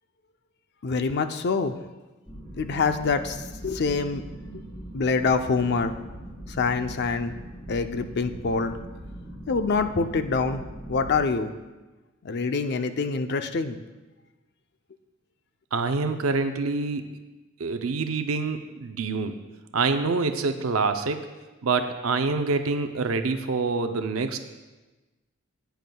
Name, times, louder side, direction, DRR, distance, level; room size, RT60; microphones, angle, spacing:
voice 1, 0.8-1.8 2.6-3.4 3.6-4.2 4.5-4.6 4.9-5.9 6.6-7.3 7.7-8.7 9.5-10.6 10.9-11.5 12.2-13.8, left 4 dB, 50° left, 8 dB, 0.5 m, -25 dB
sound 1, 2.3-11.2, right 1 dB, 20° left, 3.2 m, -40 dB
voice 2, 15.7-17.1 17.6-19.3 19.7-21.3 21.6-24.4, right 4 dB, 70° right, 7 dB, 0.5 m, -26 dB
16.0 x 9.2 x 2.3 m, 1.2 s
head